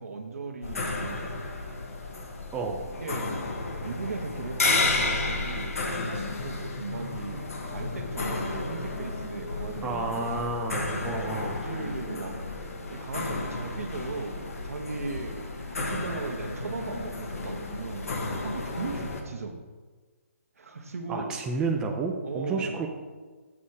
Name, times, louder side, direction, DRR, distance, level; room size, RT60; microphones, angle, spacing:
voice 1, 0.0-1.4 2.6-3.3 3.8-10.4 11.0-12.4 12.9-19.6 20.6-21.4 22.2-22.9, right 3 dB, 70° right, 4 dB, 1.3 m, -38 dB
sound 1, 0.6-19.2, left 3 dB, 70° left, 1.4 m, -32 dB
voice 2, 2.5-2.8 9.8-11.5 21.1-22.9, right 3 dB, 10° right, 1 dB, 0.6 m, -30 dB
7.5 x 4.2 x 6.5 m, 1.4 s
hypercardioid pair, 145°, 8 cm